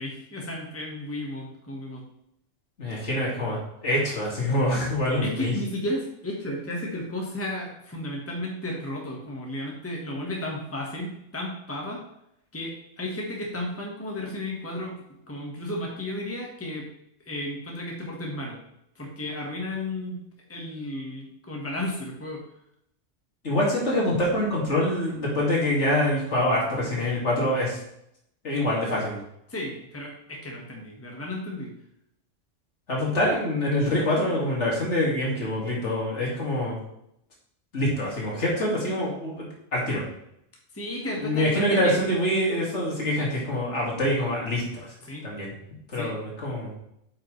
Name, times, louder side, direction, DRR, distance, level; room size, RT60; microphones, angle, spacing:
voice 1, 0.0-2.0 5.2-12.0 12.5-15.0 15.3-16.9 17.2-18.6 18.9-20.2 20.5-22.4 29.5-31.7 33.1-33.2 40.7-41.9 45.0-45.3 45.9-46.1, left 1 dB, 10° left, -1 dB, 1.4 m, -33 dB
voice 2, 2.8-5.5 23.4-27.8 28.4-29.2 32.9-36.8 37.7-40.0 41.2-44.9 45.2-45.5 45.9-46.7, left 1 dB, 70° left, -4 dB, 2.5 m, -25 dB
8.6 x 5.5 x 3.2 m, 0.77 s
omnidirectional pair, 1.3 m